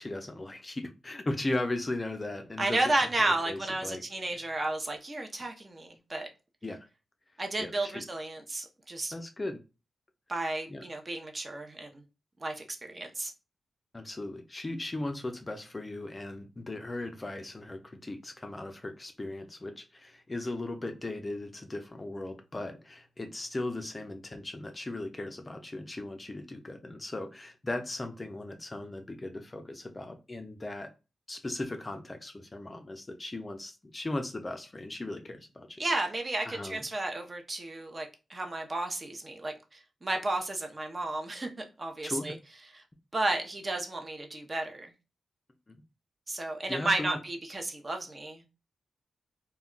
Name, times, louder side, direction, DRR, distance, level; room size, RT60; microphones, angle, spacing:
voice 1, 0.0-2.9 3.2-4.0 6.6-6.8 7.6-8.0 9.1-9.6 10.7-10.8 13.9-30.9 31.3-35.8 36.5-36.8 42.0-42.3 45.7-45.8 46.7-47.2, left 2 dB, 25° left, 0.4 m, -37 dB
voice 2, 2.6-6.3 7.4-9.1 10.3-12.0 12.4-13.3 35.8-42.4 42.7-42.8 43.1-44.9 46.3-48.5, right 2 dB, 30° right, 0.6 m, -32 dB
2.2 x 2.2 x 3.6 m
cardioid pair, 95°, 0 cm